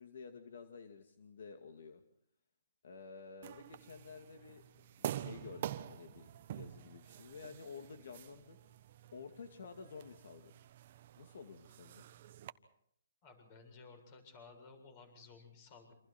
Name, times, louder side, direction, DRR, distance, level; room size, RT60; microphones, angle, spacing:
voice 1, 0.0-2.0 2.8-4.6 5.0-8.6 9.1-10.5 11.2-12.1, left 5 dB, 65° left, 6 dB, 2.3 m, -51 dB
sound 1, 3.4-12.5, right 11 dB, 40° right, 1.2 m, -47 dB
voice 2, 13.2-15.9, left 4 dB, 30° left, 7 dB, 7.5 m, -56 dB
28.0 x 27.5 x 4.5 m, 0.71 s
hypercardioid pair, 165°, 0 cm